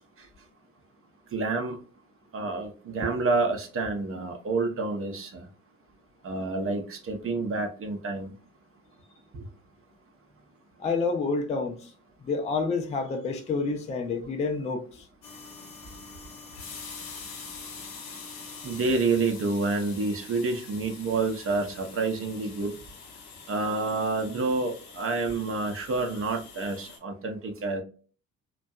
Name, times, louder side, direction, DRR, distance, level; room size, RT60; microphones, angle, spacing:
voice 1, 1.3-1.8 2.3-5.4 6.2-8.3 18.6-22.7 23.5-27.8, right 3 dB, 35° right, 0.7 m, -28 dB
voice 2, 10.8-11.9 12.2-15.0, left 4 dB, 20° left, 0.4 m, -29 dB
sound 1, 15.2-27.0, left 5 dB, 65° left, 0.8 m, -45 dB
2.5 x 2.2 x 2.3 m
figure-of-eight pair, 50°, 40 cm